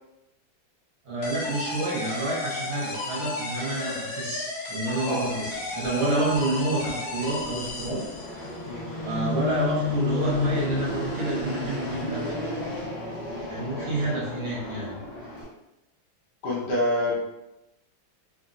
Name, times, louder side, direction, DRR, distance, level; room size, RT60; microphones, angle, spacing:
voice 1, 1.0-8.1 9.0-12.2 13.5-15.0, right 2 dB, 65° right, -5 dB, 1.2 m, -28 dB
sound 1, 1.2-8.6, left 2 dB, 80° left, 1.5 m, -34 dB
Fixed-wing aircraft airplane, 5.2-15.4, left 3 dB, 30° left, 1.1 m, -32 dB
voice 2, 16.4-17.1, left 1 dB, 65° left, -5 dB, 1.2 m, -27 dB
3.6 x 2.1 x 2.5 m, 0.91 s
omnidirectional pair, 2.1 m